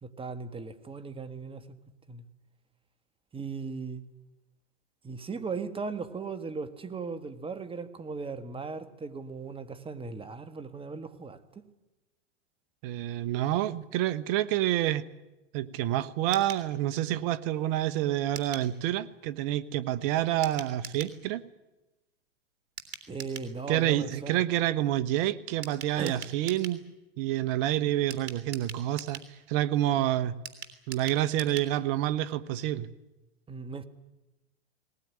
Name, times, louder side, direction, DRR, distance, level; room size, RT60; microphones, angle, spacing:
voice 1, 0.0-1.7 2.1-2.2 3.3-4.0 5.0-11.7 23.1-24.4 26.0-26.2 33.5-33.8, right 4 dB, 15° right, 1.7 m, -37 dB
voice 2, 12.8-15.0 15.5-21.4 23.7-26.8 27.2-29.2 29.5-30.3 30.9-32.9, right 13 dB, 50° right, 1.2 m, -28 dB
sound 1, 16.3-16.7 18.3-18.7 20.4-21.2 22.8-23.5 25.6-26.8 28.1-29.3 30.4-31.7 32.0-32.1 32.4-32.5, right 7 dB, 75° right, 3.4 m, -43 dB
20.0 x 19.5 x 10.0 m
hypercardioid pair, 110°, 36 cm